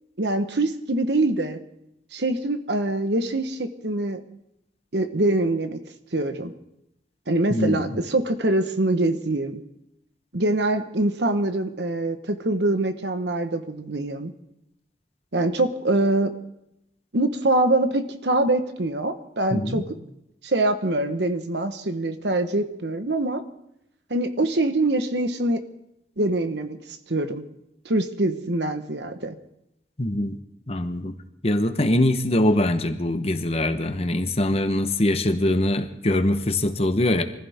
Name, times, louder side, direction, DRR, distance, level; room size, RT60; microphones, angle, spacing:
voice 1, 0.2-1.6 2.1-4.2 4.9-5.8 6.1-6.5 7.3-9.6 10.3-14.3 15.3-16.3 17.1-19.8 20.4-23.4 24.1-25.6 26.2-26.8 27.1-27.4 27.8-29.4, right 2 dB, 70° right, 9 dB, 1.3 m, -24 dB
voice 2, 7.5-8.0 19.5-19.8 30.0-30.4 30.7-31.1 31.4-37.2, left 1 dB, 35° left, 8 dB, 1.1 m, -23 dB
24.5 x 15.0 x 3.6 m, 0.82 s
head